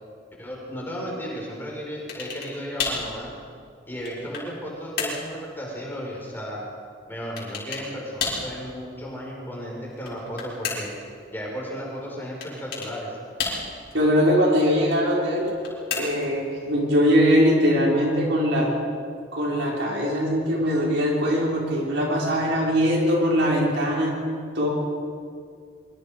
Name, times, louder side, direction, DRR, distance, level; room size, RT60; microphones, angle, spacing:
voice 1, 0.4-3.3 3.9-6.6 7.1-10.9 11.3-13.2, equal, 10° left, -3 dB, 5.5 m, -34 dB
sound 1, 2.1-2.5 2.8-3.1 3.7-4.5 5.0-5.3 7.4-7.9 8.2-8.5 9.9-11.0 12.4-12.9 13.4-13.9 15.4-16.3, left 4 dB, 50° left, 6.0 m, -31 dB
voice 2, 13.9-15.5 15.9-18.7 19.3-24.2 24.5-24.7, equal, 65° right, -3 dB, 6.0 m, -21 dB
25.0 x 24.5 x 5.3 m, 2.3 s
head